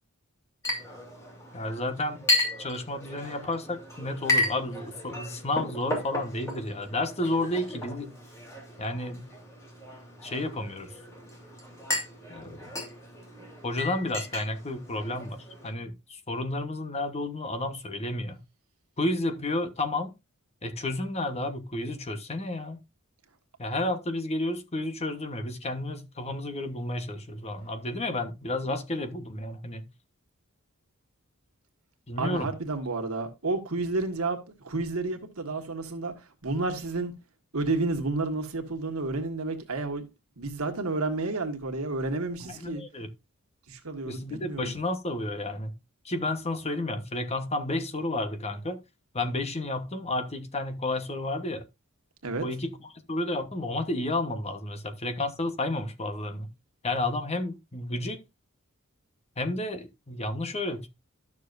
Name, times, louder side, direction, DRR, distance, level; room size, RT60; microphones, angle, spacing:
Chink clink, 0.6-15.7, left 1 dB, 15° left, 3.2 m, -34 dB
voice 1, 1.5-2.2 2.6-8.1 8.8-9.3 10.2-10.9 12.3-12.6 13.6-18.4 19.0-20.1 20.6-22.8 23.6-29.8 32.1-32.5 42.5-43.1 44.1-45.7 46.0-48.8 49.1-51.6 52.4-52.8 53.1-56.5 56.8-58.2 59.4-60.9, left 2 dB, 30° left, 1.1 m, -31 dB
voice 2, 32.2-37.1 37.5-40.0 40.4-42.8 43.7-44.7 52.2-52.4, right 3 dB, 80° right, 1.7 m, -31 dB
12.0 x 6.7 x 2.6 m
head